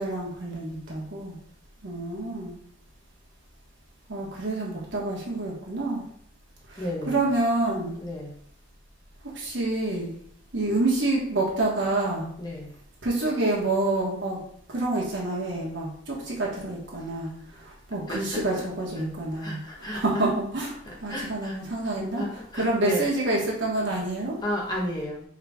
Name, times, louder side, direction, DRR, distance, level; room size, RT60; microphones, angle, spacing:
voice 1, 0.0-1.4 1.8-2.5 4.1-6.0 6.7-8.0 9.3-10.1 10.5-12.3 13.0-14.4 14.7-22.2 22.5-24.4, right 2 dB, 65° right, -4 dB, 1.3 m, -28 dB
voice 2, 6.8-7.2 8.0-8.3 12.4-12.7 18.1-18.4 19.3-20.2 20.9-21.6 22.2-23.0 24.4-25.2, left 1 dB, 20° left, -3 dB, 1.2 m, -32 dB
4.8 x 3.1 x 3.5 m, 0.64 s
head